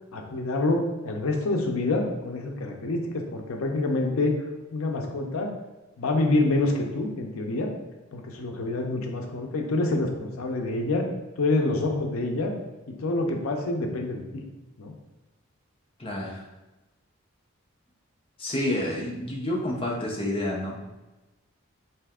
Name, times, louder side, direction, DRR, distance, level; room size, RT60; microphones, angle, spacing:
voice 1, 0.1-4.4 4.7-5.5 6.0-7.7 8.1-11.1 11.4-12.5 12.9-14.4 14.8-14.9, left 2 dB, 85° left, 3 dB, 0.5 m, -27 dB
voice 2, 16.0-16.4 18.4-20.9, left 1 dB, 25° left, -1 dB, 0.6 m, -29 dB
3.3 x 2.7 x 3.5 m, 1.1 s
head